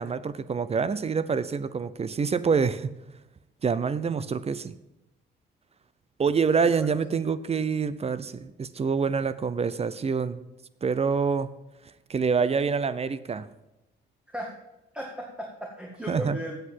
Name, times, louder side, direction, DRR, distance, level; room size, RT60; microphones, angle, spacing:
voice 1, 0.0-2.9 3.6-4.8 6.2-10.4 10.8-11.5 12.1-13.5 16.1-16.4, right 5 dB, 30° right, 16 dB, 0.6 m, -26 dB
voice 2, 14.9-16.6, equal, 5° right, -1 dB, 1.8 m, -36 dB
8.3 x 7.9 x 7.3 m, 0.96 s
cardioid pair, 90°, 20 cm